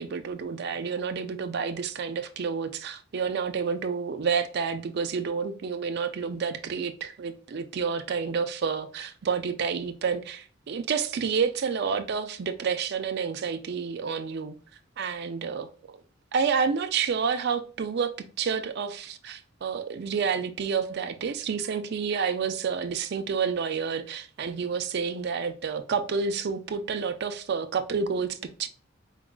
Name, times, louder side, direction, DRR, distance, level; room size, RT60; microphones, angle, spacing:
voice 1, 0.0-14.6 15.0-15.7 16.3-28.7, right 6 dB, 55° right, 0.4 m, -29 dB
3.9 x 3.7 x 2.2 m
head